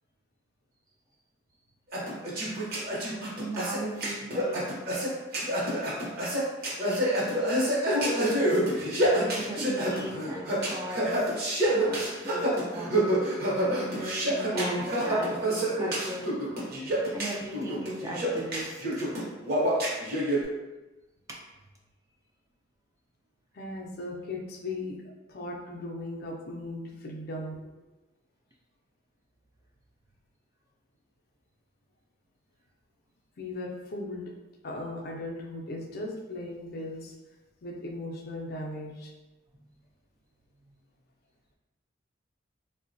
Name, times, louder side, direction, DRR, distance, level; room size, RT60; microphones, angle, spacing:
sound 1, 1.9-20.4, right 1 dB, 50° right, 0.8 m, -27 dB
voice 1, 3.4-4.6 5.5-5.6 9.4-11.4 11.7-13.0 13.6-16.3 17.1-19.0 21.3-21.4, right 1 dB, 15° right, -1 dB, 0.3 m, -38 dB
voice 2, 23.5-25.0 25.3-27.6 33.4-34.3 34.6-37.1 37.6-39.1, left 2 dB, 50° left, 0 dB, 0.4 m, -37 dB
3.7 x 2.1 x 2.5 m, 1.1 s
head